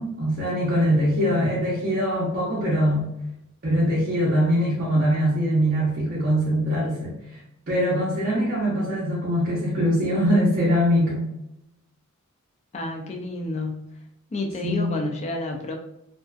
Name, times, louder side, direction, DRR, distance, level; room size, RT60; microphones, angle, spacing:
voice 1, 0.0-3.1 3.6-7.4 7.7-11.3 14.6-15.0, equal, 45° right, -7 dB, 0.6 m, -22 dB
voice 2, 12.7-14.0 14.3-15.7, left 2 dB, 30° left, 2 dB, 0.3 m, -30 dB
2.4 x 2.3 x 2.3 m, 0.85 s
head